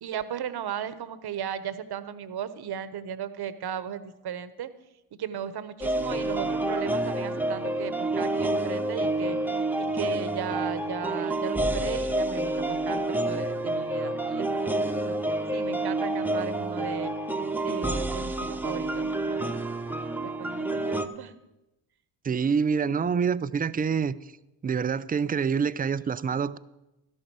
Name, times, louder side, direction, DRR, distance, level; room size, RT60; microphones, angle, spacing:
voice 1, 0.0-4.7 5.1-14.7 15.1-17.1 17.6-19.6 20.2-21.3, right 8 dB, 50° right, 1.0 m, -36 dB
sound 1, 5.8-21.1, right 2 dB, 5° right, 0.9 m, -28 dB
voice 2, 22.2-24.2 24.6-26.6, right 6 dB, 20° right, 0.4 m, -26 dB
12.5 x 11.5 x 4.7 m
hypercardioid pair, 55°, 49 cm